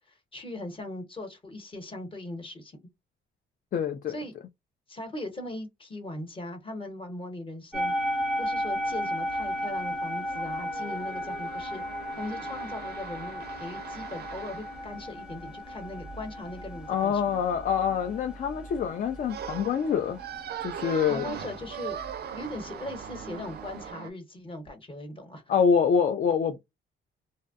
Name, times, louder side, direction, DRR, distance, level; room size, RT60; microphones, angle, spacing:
voice 1, 0.1-2.8 4.1-4.3 4.9-7.9 8.4-17.3 21.1-22.0 22.3-25.4, left 1 dB, 25° left, 0.9 m, -39 dB
voice 2, 3.7-4.1 16.9-20.2 20.6-21.3 25.5-26.6, left 7 dB, 45° left, 0.4 m, -25 dB
sound 1, 7.7-23.9, equal, 5° right, 0.6 m, -36 dB
sound 2, 8.8-14.9 19.3-24.1, right 8 dB, 55° right, 0.5 m, -41 dB
2.6 x 2.0 x 2.4 m
cardioid pair, 90°, 20 cm